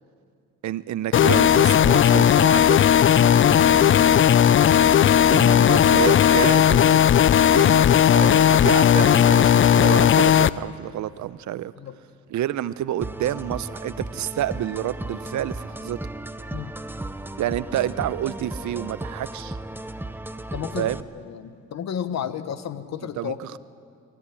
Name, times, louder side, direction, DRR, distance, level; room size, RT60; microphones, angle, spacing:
voice 1, 0.6-2.8 3.5-4.3 5.3-7.0 7.5-11.7 12.3-16.0 17.4-19.6 20.8-21.0 23.2-23.6, right 12 dB, 70° right, 16 dB, 0.8 m, -29 dB
sound 1, 1.1-10.5, left 9 dB, 40° left, 0.5 m, -16 dB
sound 2, 13.0-21.0, right 1 dB, 5° right, 0.8 m, -35 dB
voice 2, 20.5-20.9 21.2-23.4, left 9 dB, 60° left, 11 dB, 1.3 m, -32 dB
23.5 x 16.5 x 10.0 m, 2.3 s
cardioid pair, 90°, 30 cm